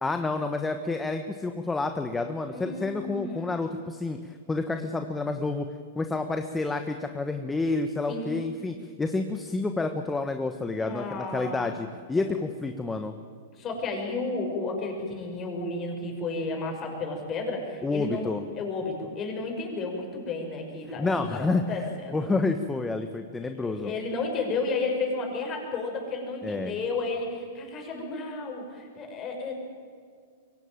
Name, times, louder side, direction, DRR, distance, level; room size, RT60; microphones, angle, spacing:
voice 1, 0.0-5.7 5.9-13.1 17.8-18.4 21.0-23.9 26.4-26.8, left 3 dB, 10° left, 7 dB, 1.2 m, -29 dB
voice 2, 2.5-3.6 8.1-8.3 10.8-11.7 13.6-18.3 18.5-22.3 23.4-29.6, left 3 dB, 30° left, 2 dB, 6.4 m, -32 dB
23.0 x 17.5 x 9.0 m, 2.1 s
hypercardioid pair, 125°, 0 cm